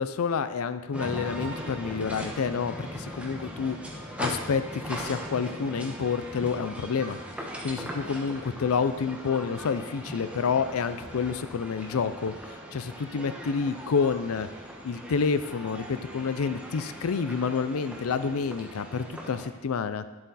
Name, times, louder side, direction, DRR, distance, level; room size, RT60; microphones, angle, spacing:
voice 1, 0.0-3.8 4.2-7.2 7.6-12.3 12.7-14.5 14.8-20.0, left 5 dB, 75° left, 12 dB, 0.5 m, -28 dB
sound 1, 0.9-19.5, equal, 5° right, 1.1 m, -39 dB
10.5 x 7.6 x 4.1 m, 1.2 s
head